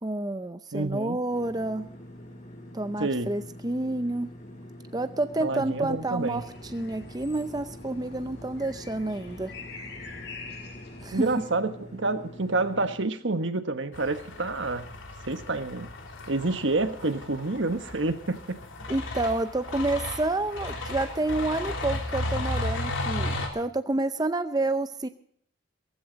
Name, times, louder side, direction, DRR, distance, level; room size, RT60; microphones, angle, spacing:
voice 1, 0.0-1.9 2.7-4.3 4.9-6.4 6.7-9.5 11.0-11.3 18.9-25.1, right 2 dB, 20° right, 10 dB, 0.6 m, -29 dB
voice 2, 0.7-1.2 3.0-3.3 5.4-6.4 11.1-14.9 15.3-15.9 16.3-18.6, right 2 dB, 75° right, 9 dB, 1.4 m, -28 dB
sound 1, 1.3-13.0, left 1 dB, 40° left, 5.5 m, -45 dB
sound 2, 6.3-11.4, left 3 dB, 60° left, 5.9 m, -44 dB
sound 3, 13.9-23.5, left 1 dB, 90° left, 3.4 m, -34 dB
17.5 x 15.5 x 4.0 m, 0.62 s
head